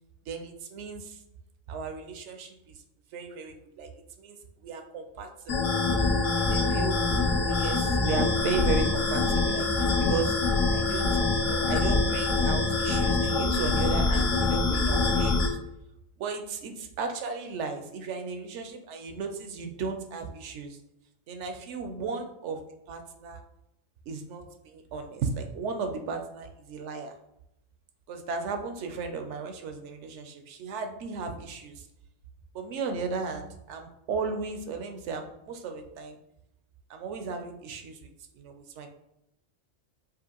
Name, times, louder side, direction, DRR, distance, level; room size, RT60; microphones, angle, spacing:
voice 1, 0.3-1.2 1.7-2.8 3.1-5.7 6.3-7.0 7.4-10.4 10.7-15.6 16.2-20.8 21.3-22.6 22.9-23.4 24.1-27.1 28.1-31.9 32.5-36.2 36.9-38.9, right 4 dB, 75° right, 6 dB, 0.9 m, -35 dB
sound 1, 5.5-15.5, left 3 dB, 75° left, 1.1 m, -25 dB
5.2 x 2.5 x 2.8 m, 0.83 s
omnidirectional pair, 1.3 m